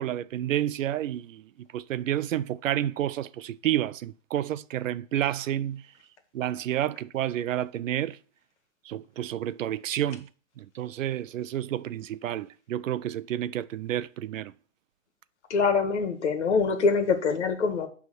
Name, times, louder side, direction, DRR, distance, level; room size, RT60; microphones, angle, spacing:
voice 1, 0.0-5.8 6.3-8.2 8.9-10.3 10.6-14.5, right 12 dB, 75° right, 0.6 m, -30 dB
voice 2, 15.5-17.9, left 4 dB, 60° left, 1.7 m, -24 dB
9.7 x 3.5 x 6.1 m
hypercardioid pair, 175°, 39 cm